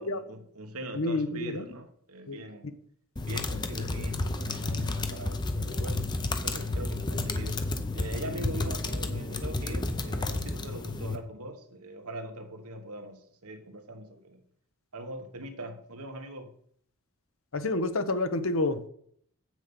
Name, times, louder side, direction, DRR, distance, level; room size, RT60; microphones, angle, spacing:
voice 1, 0.0-2.8 3.3-6.1 6.4-7.6 7.9-14.4 14.9-16.5, right 1 dB, 85° right, 6 dB, 1.4 m, -42 dB
voice 2, 0.9-1.6 2.3-2.4 17.5-18.9, left 2 dB, 65° left, 10 dB, 0.8 m, -29 dB
sound 1, 3.2-11.2, left 2 dB, 20° left, 0.6 m, -31 dB
8.2 x 6.2 x 5.3 m, 0.64 s
head